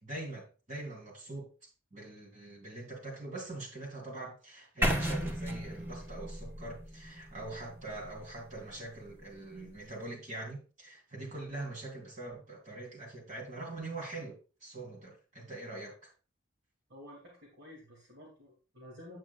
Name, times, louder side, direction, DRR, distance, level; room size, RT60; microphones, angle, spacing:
voice 1, 0.0-1.5 1.9-16.1, right 2 dB, 40° right, 3.1 m, -43 dB
sound 1, 4.8-8.8, equal, 10° right, 1.0 m, -35 dB
voice 2, 16.9-19.2, left 1 dB, 60° right, 2.5 m, -51 dB
9.2 x 8.3 x 2.3 m
head